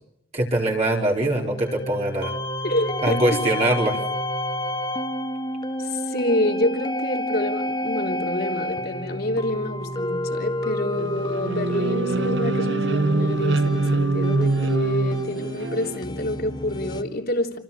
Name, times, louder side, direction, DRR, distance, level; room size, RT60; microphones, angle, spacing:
voice 1, 0.3-2.3 3.0-4.0, right 1 dB, 35° right, 4.5 m, -22 dB
sound 1, 1.3-17.0, equal, 20° left, 2.2 m, -29 dB
voice 2, 2.6-3.4 5.8-17.6, left 1 dB, 50° left, 3.5 m, -27 dB
sound 2, 10.9-16.0, right 2 dB, 60° right, 1.0 m, -24 dB
29.0 x 27.5 x 7.2 m
head